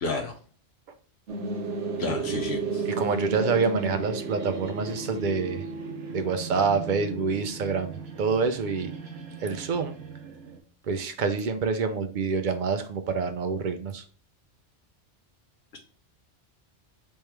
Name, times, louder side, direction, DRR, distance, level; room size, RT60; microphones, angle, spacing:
voice 1, 0.0-0.3 2.0-2.8, left 3 dB, 65° left, 3 dB, 0.9 m, -30 dB
sound 1, 1.3-10.6, right 4 dB, 75° right, 1.1 m, -34 dB
voice 2, 2.8-5.7 6.1-8.9 9.4-10.0 10.8-14.0, right 5 dB, 55° right, 8 dB, 0.6 m, -27 dB
3.6 x 3.2 x 4.6 m, 0.43 s
omnidirectional pair, 1.2 m